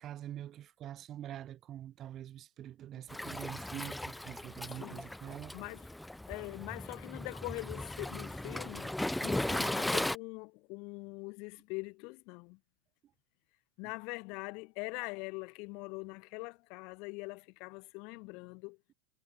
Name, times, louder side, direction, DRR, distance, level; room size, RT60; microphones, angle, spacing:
voice 1, 0.0-5.5, right 11 dB, 30° right, 3.6 m, -45 dB
Waves surf, 3.1-10.2, left 1 dB, 5° left, 0.5 m, -37 dB
voice 2, 4.6-5.1 5.5-5.9 6.3-8.9 9.2-12.6 13.8-18.8, left 30 dB, 45° left, 1.2 m, -43 dB
figure-of-eight pair, 90°, 0 cm